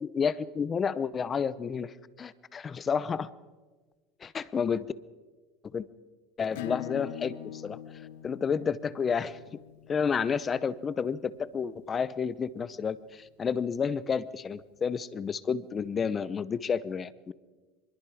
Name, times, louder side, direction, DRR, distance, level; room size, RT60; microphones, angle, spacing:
voice 1, 0.0-3.3 4.2-4.9 5.6-5.9 6.4-9.6 9.9-17.3, left 6 dB, 25° left, 17 dB, 0.8 m, -31 dB
Acoustic guitar / Strum, 6.5-11.8, left 13 dB, 80° left, 1.6 m, -43 dB
24.0 x 21.5 x 5.0 m, 1.3 s
supercardioid pair, 130°, 0 cm